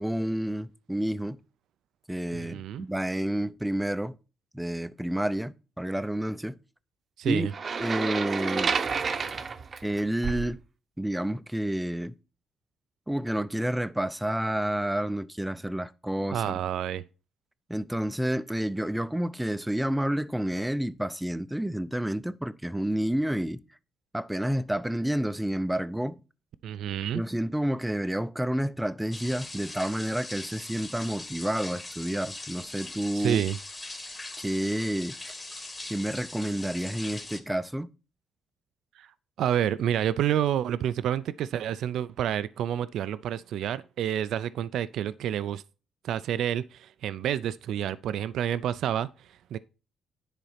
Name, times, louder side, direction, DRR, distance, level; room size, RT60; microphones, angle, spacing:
voice 1, 0.0-1.4 2.1-4.1 4.5-6.6 7.3-7.5 7.8-8.7 9.8-10.6 11.0-12.1 13.1-16.5 17.7-23.6 24.1-26.2 27.1-33.4 34.4-35.3 35.9-37.9, right 1 dB, 5° right, 0.5 m, -29 dB
voice 2, 2.3-2.8 7.2-7.5 16.3-17.0 26.6-27.2 33.1-33.6 39.0-39.1 39.4-45.6 46.0-49.6, right 10 dB, 75° right, 0.4 m, -29 dB
sound 1, 7.5-10.6, right 5 dB, 40° right, 0.8 m, -30 dB
sound 2, 29.1-37.4, left 2 dB, 20° left, 1.7 m, -41 dB
10.0 x 4.1 x 5.7 m
cardioid pair, 90°, 0 cm